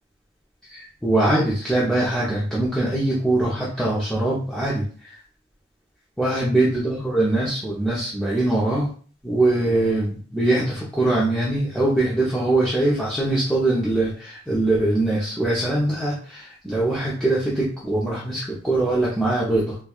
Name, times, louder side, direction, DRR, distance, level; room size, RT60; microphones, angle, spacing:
voice 1, 0.6-5.1 6.2-8.9 9.2-19.8, right 2 dB, 5° left, -8 dB, 0.7 m, -22 dB
4.5 x 2.3 x 2.4 m, 0.42 s
head